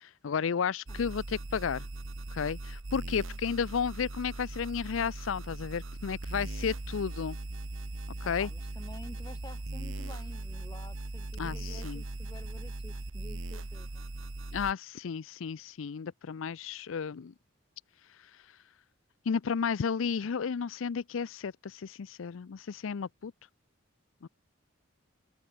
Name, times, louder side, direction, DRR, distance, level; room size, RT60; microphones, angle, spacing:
voice 1, 0.0-1.9 2.3-7.4 8.3-8.5 11.4-12.0 14.5-17.3 19.3-23.3, left 6 dB, 80° left, 0.5 m, -33 dB
sound 1, 0.9-14.7, right 2 dB, 80° right, 1.4 m, -39 dB
voice 2, 8.2-14.0, left 1 dB, 20° left, 4.3 m, -50 dB
open air
head